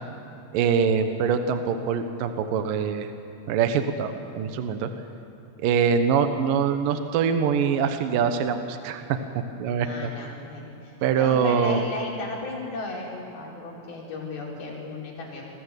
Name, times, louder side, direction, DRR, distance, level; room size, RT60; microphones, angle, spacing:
voice 1, 0.5-3.1 3.5-4.9 5.6-9.2 9.6-10.1 11.0-11.9, right 6 dB, 70° right, 7 dB, 2.6 m, -24 dB
voice 2, 9.8-15.5, left 2 dB, 70° left, -3 dB, 6.6 m, -35 dB
28.5 x 22.0 x 8.2 m, 2.9 s
omnidirectional pair, 4.5 m